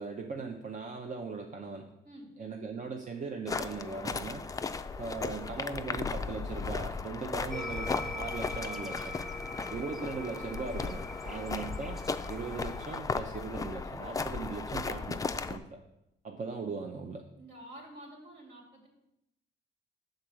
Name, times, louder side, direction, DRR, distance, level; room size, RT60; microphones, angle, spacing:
voice 1, 0.0-1.9 2.4-4.4 5.0-9.2 9.7-12.0 12.3-15.8 16.2-17.2, right 4 dB, 40° right, 3 dB, 0.6 m, -39 dB
sound 1, 3.5-15.6, left 4 dB, 15° left, 0.3 m, -36 dB
sound 2, 7.5-13.0, left 2 dB, ahead, 0.7 m, -42 dB
voice 2, 17.4-18.9, right 1 dB, 60° right, -1 dB, 2.6 m, -49 dB
6.8 x 3.9 x 6.2 m, 0.86 s
cardioid pair, 90°, 20 cm